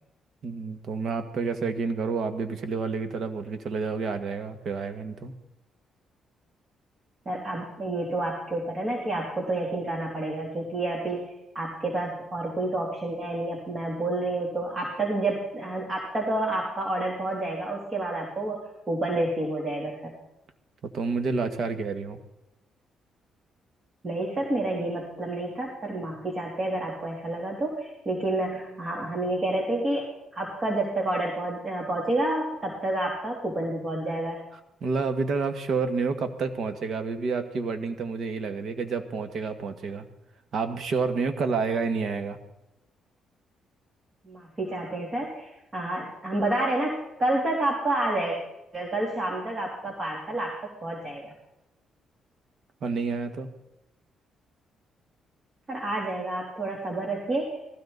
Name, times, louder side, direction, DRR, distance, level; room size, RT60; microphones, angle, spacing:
voice 1, 0.4-5.3 20.8-22.2 34.8-40.0 40.5-42.4 52.8-53.5, right 4 dB, 60° right, 8 dB, 1.6 m, -29 dB
voice 2, 7.2-11.2 11.5-20.1 24.0-30.1 30.3-34.4 44.2-48.4 48.7-50.5 50.8-51.3 55.7-57.5, right 2 dB, 35° right, -1 dB, 3.2 m, -29 dB
19.0 x 16.0 x 4.1 m, 0.91 s
cardioid pair, 90°, 0 cm